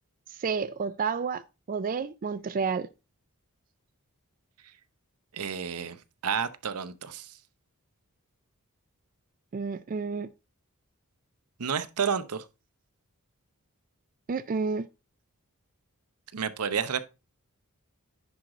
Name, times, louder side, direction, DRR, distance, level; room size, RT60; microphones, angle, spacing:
voice 1, 0.4-1.4 1.7-2.9 9.5-10.3 14.3-14.9, right 5 dB, 40° right, 0.4 m, -30 dB
voice 2, 5.3-7.4 11.6-12.5 16.3-17.0, right 7 dB, 90° right, 0.8 m, -31 dB
10.0 x 4.9 x 3.7 m
head